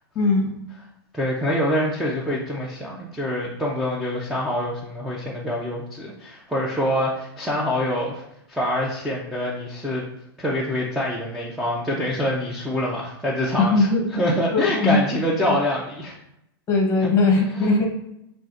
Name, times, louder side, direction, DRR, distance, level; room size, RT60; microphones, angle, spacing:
voice 1, 0.1-0.5 13.6-14.0 14.5-15.0 15.4-15.6 16.7-17.9, left 3 dB, 20° left, 0 dB, 0.9 m, -19 dB
voice 2, 1.1-8.2 8.5-10.0 10.4-16.1 17.0-17.1 17.5-17.9, left 1 dB, ahead, -5 dB, 0.4 m, -25 dB
5.4 x 2.5 x 2.4 m, 0.82 s
hypercardioid pair, 150°, 13 cm